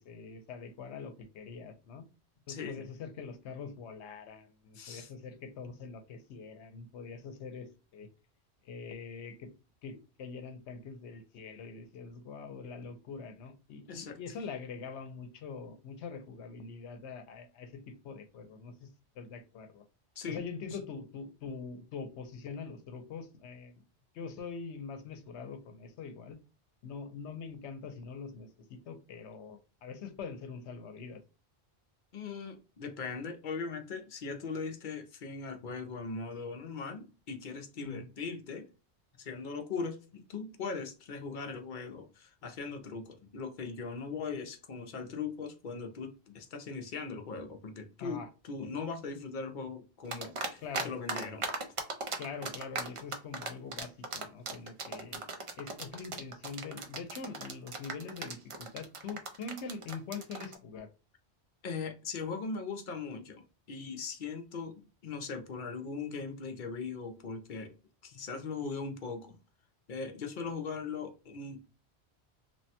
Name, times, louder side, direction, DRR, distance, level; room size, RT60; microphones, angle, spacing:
voice 1, 0.1-2.0 2.5-8.1 8.6-9.5 9.8-18.9 19.2-19.8 20.3-23.8 24.1-26.4 26.8-31.2 37.8-38.1 48.0-48.3 50.6-50.9 52.2-55.2 55.6-60.9, left 5 dB, 85° left, 0.9 m, -44 dB
voice 2, 2.5-2.8 4.7-5.1 13.9-14.2 20.2-20.4 32.1-38.7 39.2-51.5 61.6-63.4 63.7-67.7 68.0-69.4 69.9-71.6, left 4 dB, 55° left, 0.7 m, -39 dB
sound 1, 50.1-50.8 51.1-60.5, right 4 dB, 45° right, 0.4 m, -37 dB
3.1 x 2.1 x 2.7 m
omnidirectional pair, 1.1 m